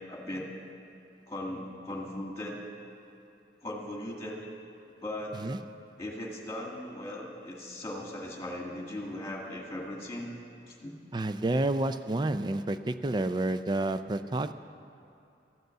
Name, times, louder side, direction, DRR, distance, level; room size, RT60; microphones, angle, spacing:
voice 1, 0.1-0.5 1.3-2.6 3.6-4.5 5.0-5.4 6.0-10.3 10.6-10.9, left 1 dB, 20° left, -1 dB, 2.0 m, -38 dB
voice 2, 11.1-14.5, right 2 dB, 25° right, 11 dB, 0.4 m, -29 dB
13.5 x 8.0 x 7.9 m, 2.7 s
head